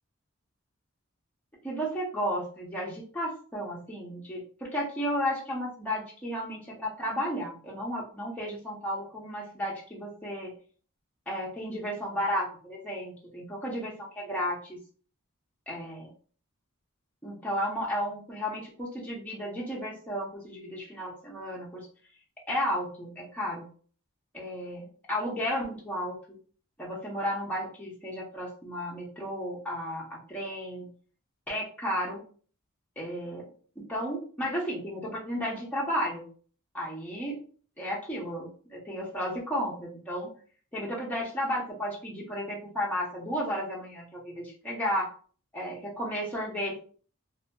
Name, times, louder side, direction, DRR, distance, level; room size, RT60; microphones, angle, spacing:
voice 1, 1.6-10.5 11.3-14.8 15.7-16.1 17.2-21.9 22.5-23.7 24.3-26.4 26.8-30.9 31.5-32.2 33.0-33.4 33.8-36.3 36.7-37.4 37.8-40.3 40.7-45.1 45.5-46.8, equal, 5° left, -5 dB, 0.6 m, -33 dB
2.7 x 2.6 x 2.2 m, 0.43 s
head